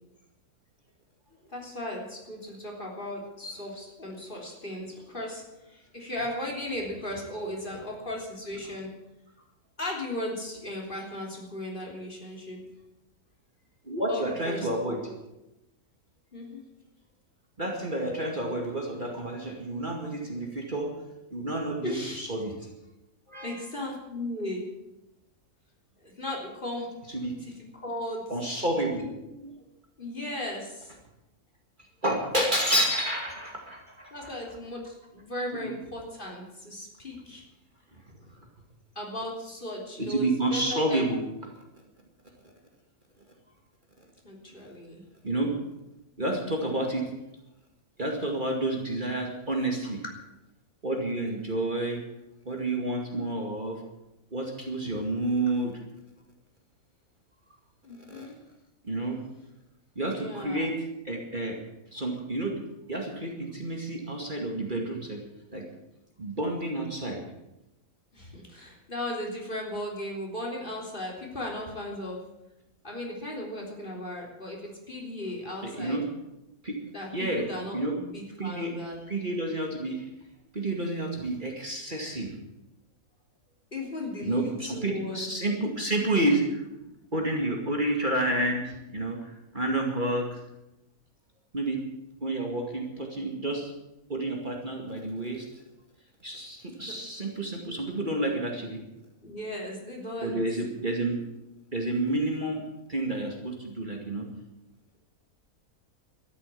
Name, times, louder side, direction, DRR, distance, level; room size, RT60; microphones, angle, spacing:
voice 1, 1.5-8.9 9.8-12.6 14.1-15.0 16.3-16.6 21.8-22.2 23.4-24.7 26.0-26.9 27.4-28.2 28.6-28.7 29.0-29.6 30.0-30.9 34.1-37.4 39.0-41.1 44.2-45.0 57.8-58.3 60.1-60.7 68.1-72.2 72.8-76.0 76.9-79.0 83.7-85.3 96.8-96.9 99.2-100.4, left 1 dB, 35° left, -2 dB, 3.6 m, -36 dB
voice 2, 13.8-15.0 17.6-20.9 21.3-22.5 23.3-23.6 27.1-27.3 28.3-29.0 32.0-34.3 35.5-35.7 38.1-38.2 40.0-41.2 45.2-45.5 46.2-47.1 48.0-50.0 50.8-52.0 52.5-53.8 54.3-55.8 58.1-58.3 58.8-59.2 60.0-60.7 61.0-61.6 61.9-62.6 62.9-65.2 65.5-65.7 66.2-67.2 75.6-76.0 76.6-76.8 77.1-77.5 77.7-78.0 78.4-78.7 79.1-80.1 80.5-82.3 84.2-86.6 87.1-90.4 91.5-91.8 92.2-93.7 94.1-95.5 96.2-98.8 100.2-101.2 101.7-102.6 102.9-104.3, right 1 dB, 30° right, 0 dB, 2.3 m, -29 dB
13.0 x 11.0 x 8.4 m, 0.92 s
omnidirectional pair, 1.6 m